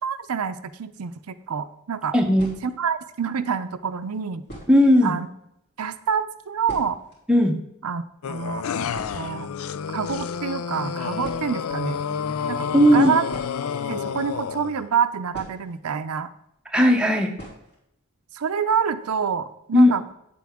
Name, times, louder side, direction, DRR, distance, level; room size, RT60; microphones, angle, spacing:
voice 1, 0.0-2.1 2.6-4.4 5.0-5.3 5.8-7.0 7.8-8.7 9.1-9.5 9.9-12.0 12.5-13.3 13.9-16.3 18.3-20.1, right 6 dB, 85° right, 10 dB, 0.5 m, -27 dB
sound 1, 1.4-1.5 2.3-3.0 3.9-4.0 4.4-5.0 5.3-5.4 5.6-5.8 6.2-7.2 7.5-7.6 7.9-8.2 8.5-8.6 8.9-9.8 10.8-10.9 11.2-11.8 13.2-14.3 15.3-16.1 16.4-16.5 17.3-17.8 18.1-18.2 18.6-18.7 19.1-19.5, right 1 dB, 50° left, 3.3 m, -42 dB
voice 2, 2.1-2.5 4.7-5.2 7.3-7.6 12.7-13.1 16.7-17.3 19.7-19.9, equal, 5° right, 2 dB, 0.8 m, -16 dB
sound 2, 8.2-14.9, left 7 dB, 75° left, 0.4 m, -29 dB
9.2 x 7.6 x 3.6 m, 0.79 s
head